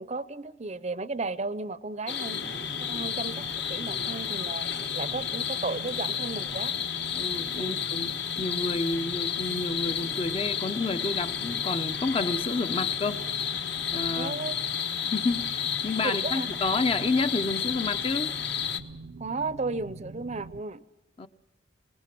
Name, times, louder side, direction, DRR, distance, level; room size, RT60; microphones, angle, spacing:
voice 1, 0.0-2.4 2.8-4.7 4.9-6.8 7.6-7.8 14.1-14.5 16.2-16.5 19.2-20.8, right 3 dB, 35° right, 15 dB, 0.6 m, -34 dB
sound 1, 2.1-18.8, left 8 dB, 60° left, 1.3 m, -31 dB
sound 2, 2.2-20.6, right 2 dB, 75° right, 0.7 m, -44 dB
voice 2, 7.1-13.2 13.9-14.4 15.1-18.3 21.2-21.3, left 3 dB, 30° left, 10 dB, 0.6 m, -30 dB
27.0 x 19.0 x 6.0 m, 0.97 s
head